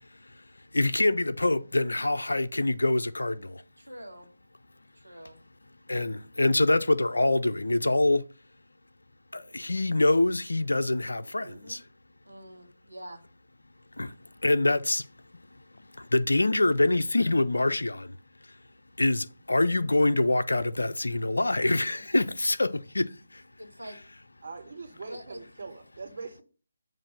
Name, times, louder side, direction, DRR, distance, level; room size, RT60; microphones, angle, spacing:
voice 1, 0.7-3.6 5.9-8.2 9.3-11.8 14.0-14.1 14.4-15.1 16.0-18.2 19.0-23.4, left 2 dB, 75° left, 0.4 m, -25 dB
voice 2, 3.8-4.3 4.9-5.4 12.2-13.2 23.6-24.0 25.0-25.4, equal, 90° right, 1.4 m, -44 dB
voice 3, 11.4-11.8 21.6-22.0 24.4-26.4, right 4 dB, 50° right, 1.4 m, -43 dB
7.3 x 2.5 x 5.8 m
figure-of-eight pair, 150°, 0 cm